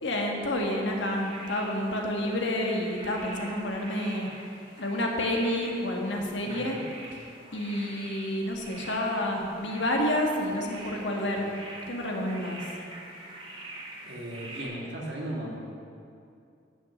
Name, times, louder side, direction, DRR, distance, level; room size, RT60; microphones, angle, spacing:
voice 1, 0.0-4.3 4.8-6.8 7.1-7.2 7.5-11.5 11.9-12.6, left 1 dB, 75° left, 0 dB, 1.6 m, -29 dB
sound 1, 0.8-14.6, right 2 dB, 30° right, 2.2 m, -45 dB
voice 2, 6.4-6.8 11.3-11.5 14.0-15.7, right 1 dB, 65° right, -2 dB, 2.1 m, -37 dB
10.5 x 6.2 x 7.2 m, 2.5 s
head